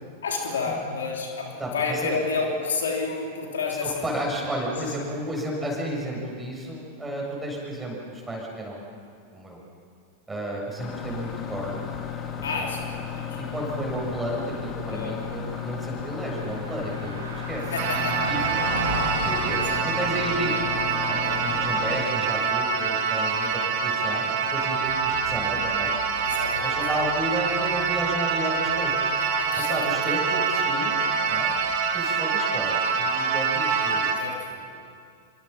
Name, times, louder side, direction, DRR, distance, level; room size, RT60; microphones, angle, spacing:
voice 1, 0.2-4.1 4.7-4.9 12.4-13.4 14.9-15.2 17.7-18.3 19.5-19.8 21.2-21.4 23.3-23.6 26.2-26.8 29.4-30.2 30.6-31.1 34.1-34.5, left 4 dB, 65° left, 0 dB, 3.4 m, -31 dB
voice 2, 1.6-2.2 3.8-8.8 9.3-9.6 10.3-11.9 12.4-12.7 13.4-17.6 17.9-18.6 19.2-25.9 26.6-29.0 29.6-31.0 31.3-31.5 31.9-34.2 34.5-34.8, right 1 dB, 10° right, -2 dB, 7.8 m, -32 dB
sound 1, 10.8-22.1, left 7 dB, 30° left, 2.8 m, -34 dB
Car passing by, 15.9-32.0, right 2 dB, 70° right, 5.7 m, -39 dB
sound 2, 17.8-34.1, right 5 dB, 45° right, 2.6 m, -25 dB
27.5 x 25.5 x 5.9 m, 2.3 s
figure-of-eight pair, 90°, 0 cm